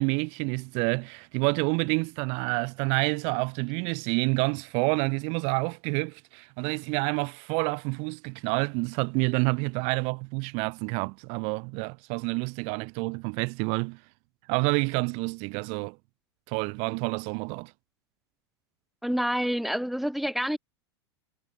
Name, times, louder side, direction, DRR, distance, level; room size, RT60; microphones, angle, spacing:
voice 1, 0.0-14.0 14.5-16.0 16.5-17.7, right 35 dB, 50° right, 2.4 m, -28 dB
voice 2, 19.0-20.6, equal, ahead, 3.3 m, -27 dB
figure-of-eight pair, 90°, 14 cm